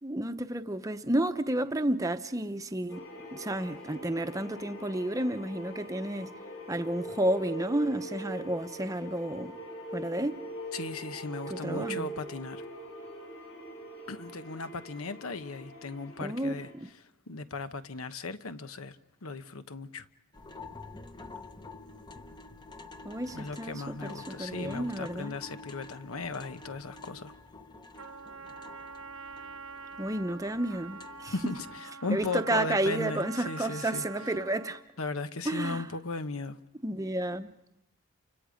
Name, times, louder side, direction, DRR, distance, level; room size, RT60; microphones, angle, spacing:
voice 1, 0.0-3.0 3.3-6.3 6.7-9.5 9.9-10.4 11.5-12.1 16.2-16.6 23.0-25.3 30.0-31.3 32.1-34.8 35.5-35.8 36.8-37.5, right 1 dB, 15° right, 0.8 m, -31 dB
sound 1, 2.9-16.7, right 2 dB, 60° left, 7.4 m, -43 dB
voice 2, 10.7-12.6 14.1-16.7 17.0-19.0 19.2-20.1 23.3-27.3 31.3-34.0 35.0-36.6, left 3 dB, 85° left, 1.1 m, -37 dB
sound 2, 20.3-31.8, left 3 dB, 20° left, 0.9 m, -48 dB
Trumpet, 28.0-34.9, right 4 dB, 75° right, 1.1 m, -45 dB
30.0 x 25.5 x 5.1 m
head